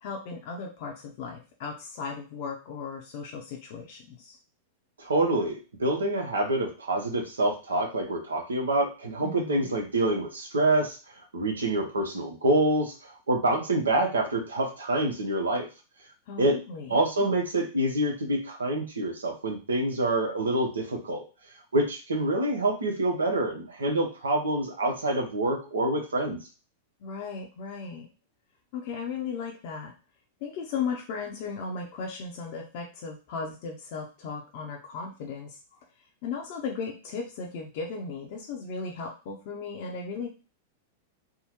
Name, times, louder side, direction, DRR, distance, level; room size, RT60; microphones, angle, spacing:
voice 1, 0.0-4.4 9.2-9.7 16.3-17.3 27.0-28.1 28.7-29.9 30.4-35.8 36.2-40.3, left 5 dB, 55° left, 0 dB, 0.6 m, -36 dB
voice 2, 5.0-11.0 11.3-15.7 16.4-16.6 16.9-21.2 21.7-26.4, right 1 dB, 90° right, 3 dB, 0.9 m, -26 dB
3.5 x 2.2 x 3.0 m, 0.32 s
hypercardioid pair, 105°, 0 cm